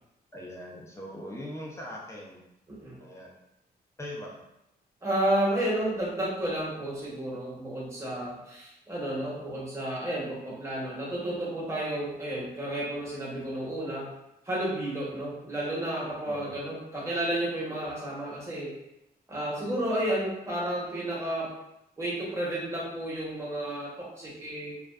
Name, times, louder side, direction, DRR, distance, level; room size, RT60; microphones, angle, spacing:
voice 1, 0.3-2.4 3.0-3.3 4.0-4.4 16.3-16.6, left 1 dB, 15° left, -3 dB, 0.4 m, -41 dB
voice 2, 5.0-14.1 14.4-18.7 19.3-21.5 22.0-24.7, right 1 dB, 15° right, -6 dB, 0.8 m, -31 dB
2.5 x 2.2 x 2.3 m, 0.86 s
wide cardioid pair, 130°, 17 cm